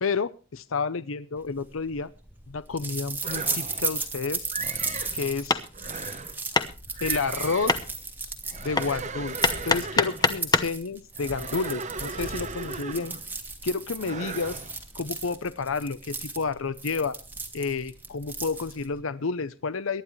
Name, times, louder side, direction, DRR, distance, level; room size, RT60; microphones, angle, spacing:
voice 1, 0.0-2.1 2.5-4.5 5.1-5.6 7.0-7.7 8.6-9.4 9.6-13.1 13.6-14.6 14.9-17.2 17.5-20.0, left 4 dB, 75° left, 15 dB, 0.7 m, -30 dB
sound 1, 1.6-19.0, right 3 dB, 10° right, 1.6 m, -35 dB
sound 2, 3.2-4.0 4.5-5.2 5.7-6.4 6.9-7.9 8.4-10.4 11.1-13.3 14.0-14.8, right 4 dB, 35° right, 1.0 m, -37 dB
Hammer, 5.0-10.8, left 3 dB, 20° left, 0.9 m, -28 dB
23.0 x 11.0 x 3.2 m, 0.34 s
head